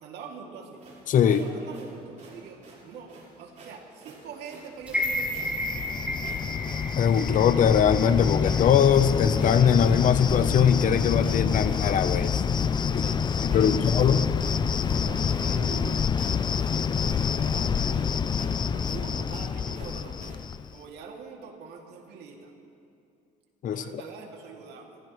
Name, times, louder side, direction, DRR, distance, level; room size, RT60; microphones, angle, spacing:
voice 1, 0.0-0.8 1.2-5.6 12.9-13.8 15.0-16.1 16.8-18.1 18.7-20.2 20.7-22.5 23.7-25.0, right 5 dB, 80° right, 1 dB, 2.4 m, -44 dB
Marcha fuerte, 0.8-20.5, right 3 dB, 45° right, 4.4 m, -50 dB
voice 2, 1.1-1.4 7.0-12.4 12.9-13.0 13.5-14.2 23.6-23.8, left 8 dB, 50° left, 11 dB, 0.7 m, -21 dB
sound 1, 4.9-9.0 9.4-9.5, left 1 dB, 10° right, 2.4 m, -33 dB
Cricket, 5.0-20.7, left 6 dB, 25° left, 0.4 m, -27 dB
30.0 x 15.0 x 3.1 m, 2.5 s
cardioid pair, 110°, 17 cm